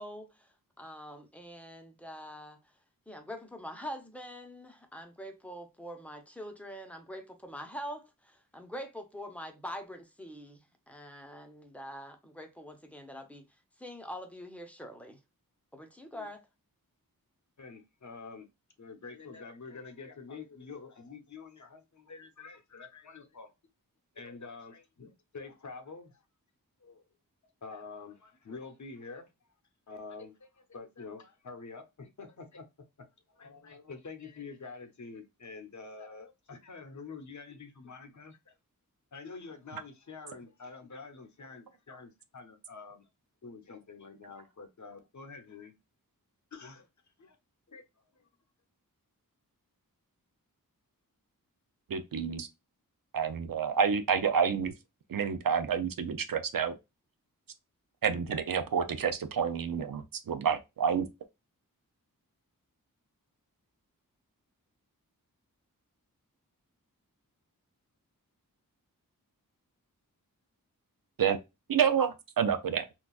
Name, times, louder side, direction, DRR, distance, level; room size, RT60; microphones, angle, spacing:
voice 1, 0.0-2.6 3.1-13.4 13.8-15.2 15.7-16.5, equal, 5° left, 0.8 m, -44 dB
voice 2, 17.6-18.5 18.8-23.5 24.1-26.2 26.8-27.0 27.6-29.3 29.9-32.7 33.3-38.5 39.1-43.1 43.4-45.7 46.5-46.9 47.2-47.4 47.7-47.8 48.1-48.2, left 4 dB, 55° left, 0.8 m, -47 dB
voice 3, 51.9-52.5 53.1-54.7 55.1-56.7 58.0-61.0 71.2-71.4 71.7-72.8, right 7 dB, 70° right, 0.6 m, -29 dB
3.8 x 2.3 x 2.3 m
wide cardioid pair, 85°, 35 cm